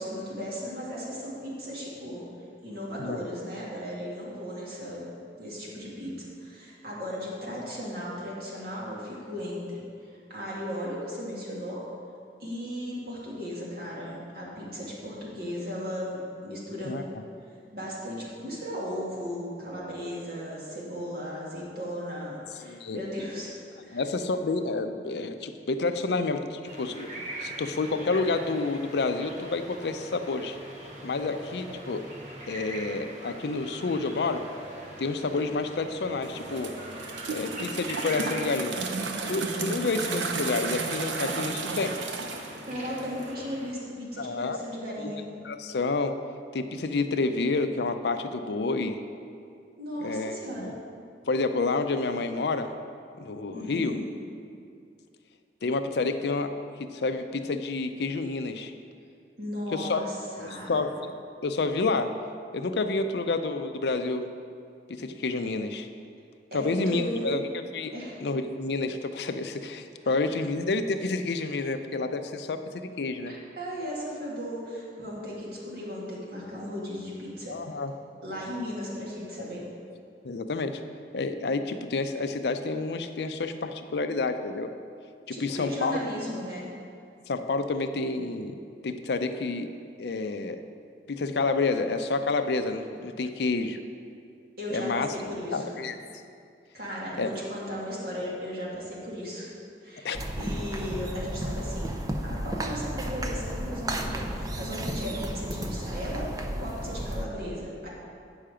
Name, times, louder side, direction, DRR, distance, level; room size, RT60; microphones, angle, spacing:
voice 1, 0.0-2.2 2.6-5.0 5.4-6.1 6.4-9.8 10.3-11.8 12.4-17.0 17.7-23.5 23.8-24.0 42.7-45.3 49.8-50.7 53.5-54.0 59.4-60.8 66.5-67.3 67.9-68.2 73.3-77.6 78.2-79.6 85.3-86.7 94.6-95.8 96.7-99.5 99.8-100.1 100.4-101.9 102.2-107.9, equal, 60° right, -5 dB, 2.1 m, -36 dB
voice 2, 22.6-23.0 23.9-27.1 27.4-30.6 31.0-32.0 32.5-34.4 35.0-36.7 37.3-38.8 39.3-42.0 44.2-44.6 45.0-45.1 45.4-46.2 46.5-49.0 50.0-50.7 51.3-52.7 53.2-53.9 55.6-56.5 56.8-58.7 59.7-60.0 60.4-61.1 61.4-62.2 62.5-64.3 64.9-65.9 66.5-67.4 67.7-67.9 68.2-73.3 77.5-77.9 80.2-80.8 81.1-84.7 85.3-86.0 87.3-89.7 90.0-90.6 91.1-93.8 94.7-95.1 95.5-96.0 97.2-97.3 100.0-100.2, left 3 dB, 70° left, 8 dB, 0.5 m, -29 dB
sound 1, 26.6-43.7, right 1 dB, 40° right, 1.0 m, -42 dB
sound 2, 36.2-43.3, right 4 dB, 90° right, 0.6 m, -33 dB
sound 3, 100.1-107.2, right 1 dB, 20° right, 0.5 m, -33 dB
8.8 x 5.6 x 5.0 m, 2.4 s
head